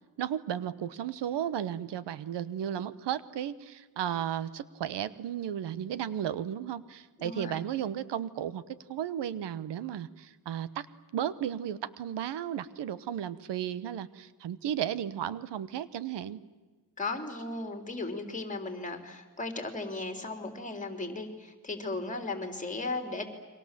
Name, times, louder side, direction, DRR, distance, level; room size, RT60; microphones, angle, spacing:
voice 1, 0.2-10.9 11.1-16.4, right 10 dB, 90° right, 16 dB, 1.1 m, -34 dB
voice 2, 7.2-7.6 17.0-23.3, left 3 dB, 20° left, 6 dB, 3.4 m, -36 dB
30.0 x 24.0 x 7.5 m, 1.3 s
wide cardioid pair, 135°, 41 cm